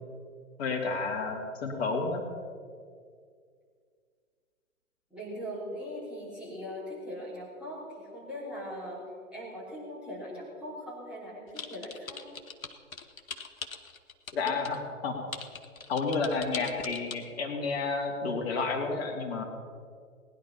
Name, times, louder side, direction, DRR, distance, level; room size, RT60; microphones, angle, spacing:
voice 1, 0.6-2.2 14.3-15.2 15.9-19.4, left 4 dB, 45° left, 2 dB, 2.6 m, -31 dB
voice 2, 5.1-9.0 9.3-12.2, equal, 5° right, -8 dB, 3.8 m, -40 dB
sound 1, 11.6-14.8 15.3-17.1, left 5 dB, 70° left, 1.3 m, -40 dB
18.5 x 10.5 x 5.7 m, 2.1 s
figure-of-eight pair, 125°, 42 cm